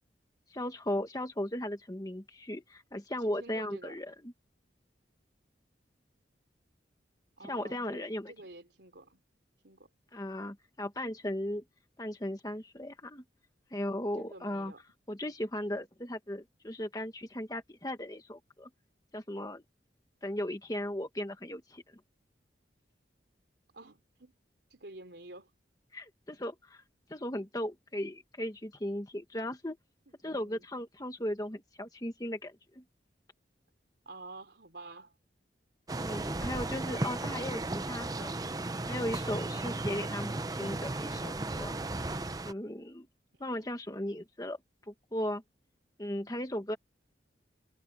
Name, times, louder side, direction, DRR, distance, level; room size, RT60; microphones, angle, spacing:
voice 1, 0.5-4.3 7.4-8.3 10.1-11.6 12.0-13.2 13.7-14.7 15.1-18.7 19.1-19.6 20.2-22.0 25.9-26.8 27.1-29.8 30.2-32.8 36.0-38.3 38.9-41.9 42.4-43.1 43.4-44.6 44.9-45.4 46.0-46.8, left 1 dB, 20° left, 1.5 m, -37 dB
voice 2, 3.4-3.9 7.4-9.2 9.6-9.9 14.2-14.8 23.7-24.3 24.7-25.5 30.2-30.6 34.0-35.1 43.4-43.6, right 2 dB, 75° right, 3.2 m, -49 dB
sound 1, 35.9-42.5, right 2 dB, 20° right, 0.6 m, -35 dB
head